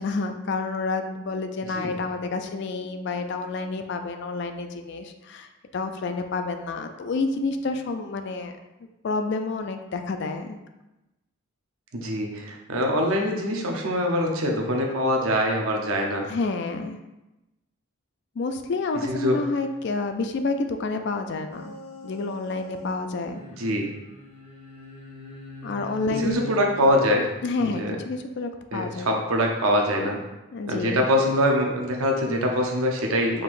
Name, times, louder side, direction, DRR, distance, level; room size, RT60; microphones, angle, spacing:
voice 1, 0.0-8.6 9.0-10.6 16.3-17.0 18.4-21.8 22.0-23.4 25.6-26.4 27.4-29.2 30.5-31.0, left 3 dB, 50° left, 6 dB, 0.3 m, -29 dB
voice 2, 11.9-16.3 19.0-19.4 23.6-23.9 26.1-27.3 27.6-28.0 28.7-30.2 30.7-33.4, equal, 75° right, 1 dB, 0.7 m, -24 dB
sound 1, 21.5-22.9 23.2-26.9, left 2 dB, 25° right, 0.9 m, -43 dB
4.6 x 3.7 x 2.5 m, 1.0 s
head